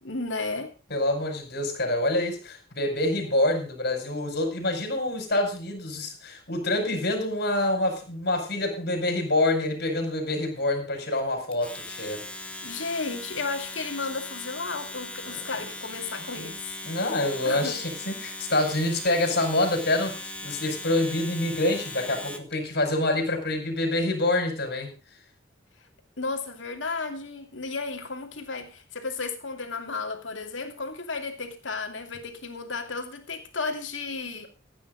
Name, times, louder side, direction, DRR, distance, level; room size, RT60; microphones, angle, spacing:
voice 1, 0.0-0.7 12.6-16.7 17.4-17.8 26.2-34.5, left 4 dB, 70° left, 2.8 m, -33 dB
voice 2, 0.9-12.2 15.3-15.7 16.4-16.5 16.8-24.9, left 1 dB, 55° left, 5.2 m, -26 dB
Domestic sounds home sounds, 11.5-22.5, left 2 dB, 5° left, 1.5 m, -39 dB
15.0 x 9.5 x 5.1 m
head